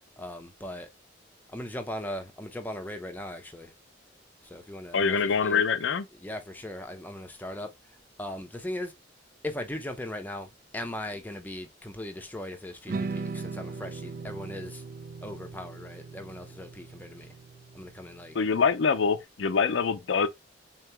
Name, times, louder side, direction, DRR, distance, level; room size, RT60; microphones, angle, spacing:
voice 1, 0.2-0.9 1.5-3.7 4.4-5.6 6.1-8.9 9.4-14.8 15.2-17.3 17.7-18.3, left 1 dB, 10° left, 0.6 m, -39 dB
voice 2, 4.9-6.0 18.3-20.3, left 5 dB, 90° left, 0.5 m, -25 dB
sound 1, 12.9-19.1, right 4 dB, 50° right, 0.3 m, -39 dB
3.8 x 2.8 x 3.4 m
head